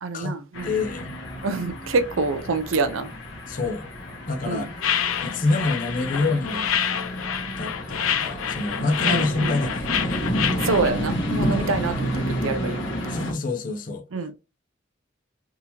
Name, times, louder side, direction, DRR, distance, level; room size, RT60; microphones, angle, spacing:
voice 1, 0.0-0.7 1.4-3.1 4.5-4.7 9.0-9.5 10.6-13.2 14.1-14.3, right 3 dB, 80° right, 0.5 m, -26 dB
sound 1, 0.5-13.3, equal, 65° left, 1.3 m, -30 dB
voice 2, 0.6-1.1 3.4-3.9 4.3-6.7 7.6-10.8 11.5-11.8 13.1-14.0, left 3 dB, 45° left, 0.6 m, -27 dB
sound 2, 4.8-10.9, left 8 dB, 85° left, 0.5 m, -27 dB
3.6 x 2.8 x 2.9 m
head